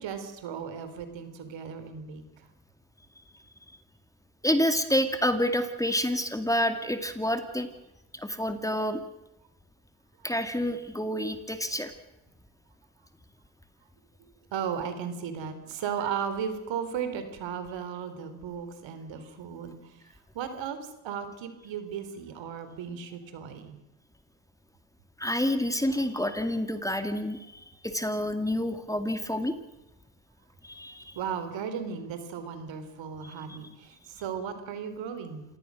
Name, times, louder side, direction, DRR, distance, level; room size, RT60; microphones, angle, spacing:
voice 1, 0.0-2.5 14.2-20.0 20.3-23.8 31.2-35.4, right 7 dB, 65° right, 9 dB, 3.8 m, -36 dB
voice 2, 4.4-7.7 8.1-9.0 10.2-11.9 25.2-29.6 30.6-31.2 33.2-33.6, left 1 dB, 5° left, 8 dB, 2.3 m, -28 dB
28.0 x 17.5 x 6.4 m, 0.90 s
supercardioid pair, 75°, 49 cm